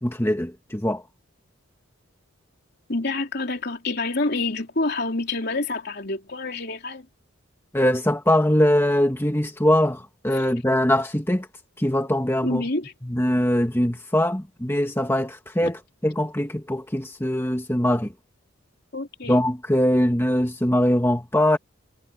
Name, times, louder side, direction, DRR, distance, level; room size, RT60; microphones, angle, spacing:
voice 1, 0.0-1.0 7.7-11.5 11.8-12.6 13.1-18.1 19.3-21.6, left 1 dB, 10° left, 1.5 m, -22 dB
voice 2, 2.9-7.1 10.3-10.5 12.4-12.9 15.6-15.7 18.9-19.4, left 2 dB, 55° left, 3.4 m, -27 dB
head